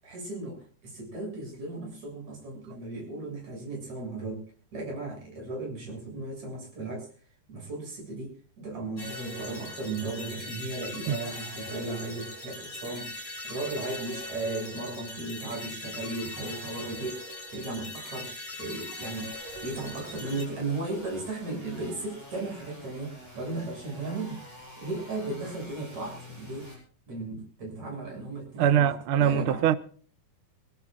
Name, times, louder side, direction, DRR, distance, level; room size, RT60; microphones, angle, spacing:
voice 1, 0.0-4.4 4.7-7.1 7.5-13.1 13.4-17.2 17.5-18.3 18.6-24.4 24.8-26.7 27.1-28.9 29.2-29.7, right 3 dB, 55° right, 8.6 m, -36 dB
sound 1, 9.0-20.4, left 2 dB, 45° left, 7.2 m, -40 dB
sound 2, 19.3-26.8, left 1 dB, 5° right, 7.9 m, -47 dB
voice 2, 28.6-29.7, right 9 dB, 80° right, 1.2 m, -22 dB
25.0 x 18.0 x 2.5 m
omnidirectional pair, 3.7 m